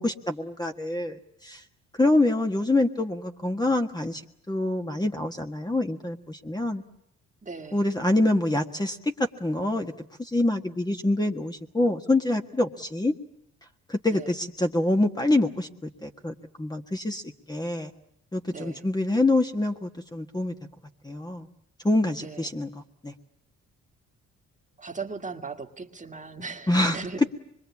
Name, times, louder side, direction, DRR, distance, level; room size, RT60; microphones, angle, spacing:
voice 1, 0.0-1.6 2.0-4.2 4.5-6.8 7.7-9.9 10.2-13.1 13.9-17.2 17.5-17.9 18.3-20.5 21.0-21.5 21.8-22.7 23.0-23.1 26.7-27.0, left 2 dB, 15° left, 4 dB, 1.6 m, -26 dB
voice 2, 7.4-7.9 14.1-14.3 18.5-18.8 22.2-22.5 24.8-27.3, right 4 dB, 25° right, 4 dB, 1.9 m, -38 dB
25.0 x 22.5 x 8.5 m, 0.74 s
cardioid pair, 90°, 30 cm